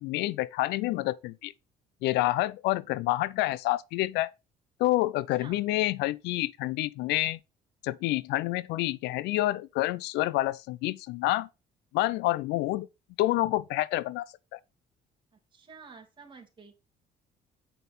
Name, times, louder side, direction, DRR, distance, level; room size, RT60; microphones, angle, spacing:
voice 1, 0.0-1.5 2.0-4.3 4.8-7.4 7.8-11.5 11.9-12.9 13.2-14.6, left 17 dB, 85° left, 0.5 m, -28 dB
voice 2, 15.5-16.8, right 5 dB, 30° right, 2.7 m, -50 dB
7.8 x 5.4 x 4.1 m
cardioid pair, 110°, 17 cm